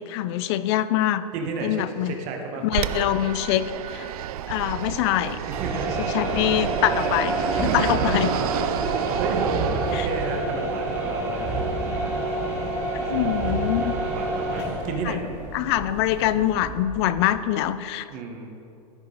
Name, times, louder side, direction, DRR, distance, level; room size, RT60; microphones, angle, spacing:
voice 1, 0.1-1.2 1.6-2.1 2.6-4.1 4.5-5.4 6.0-8.3 9.9-10.1 12.9-13.9 15.1-15.2 15.5-18.1, left 12 dB, 45° left, 14 dB, 0.4 m, -24 dB
voice 2, 1.3-2.6 5.5-6.1 7.6-11.6 11.8-12.2 13.1-13.8 14.1-15.3 18.1-18.6, right 4 dB, 40° right, 2 dB, 1.3 m, -32 dB
Fixed-wing aircraft airplane, 2.7-10.5, right 10 dB, 70° right, 0.5 m, -30 dB
sound 1, 5.5-17.3, right 2 dB, 15° right, 2.1 m, -28 dB
14.5 x 5.4 x 3.9 m, 2.8 s
hypercardioid pair, 140°, 20 cm